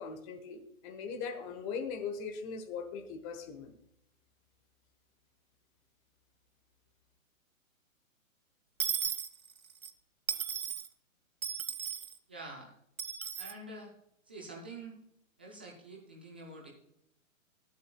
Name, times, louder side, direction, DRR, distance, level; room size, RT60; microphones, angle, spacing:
voice 1, 0.0-3.7, left 5 dB, 25° left, 6 dB, 1.2 m, -40 dB
Dishes pots and pans / Coin (dropping), 8.8-9.9 10.3-10.9 11.4-12.1 13.0-13.5, right 8 dB, 75° right, 1.4 m, -35 dB
voice 2, 12.3-12.7 13.4-13.9 14.3-15.0 15.4-16.7, right 2 dB, 10° right, -1 dB, 0.3 m, -46 dB
20.5 x 8.5 x 2.3 m, 0.76 s
figure-of-eight pair, 125°, 41 cm